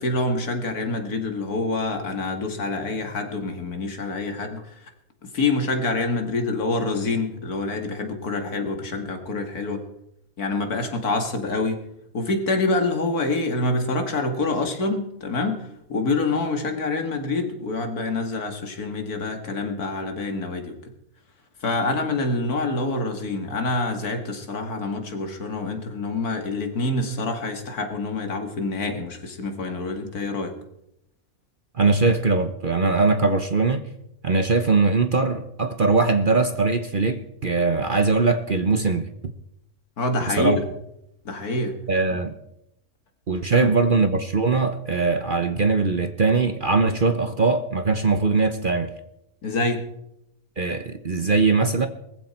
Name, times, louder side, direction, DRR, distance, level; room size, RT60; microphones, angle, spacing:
voice 1, 0.0-4.9 5.3-9.8 10.4-11.8 12.1-20.8 21.6-30.5 40.0-40.6 41.2-41.8 42.1-42.2 43.5-43.7 49.4-49.8, left 3 dB, 75° left, 5 dB, 2.6 m, -26 dB
voice 2, 31.7-33.8 34.2-39.1 40.3-40.6 41.9-42.3 43.3-48.9 50.6-51.9, right 3 dB, 40° right, 9 dB, 1.0 m, -21 dB
20.0 x 14.5 x 4.4 m, 0.80 s
omnidirectional pair, 1.6 m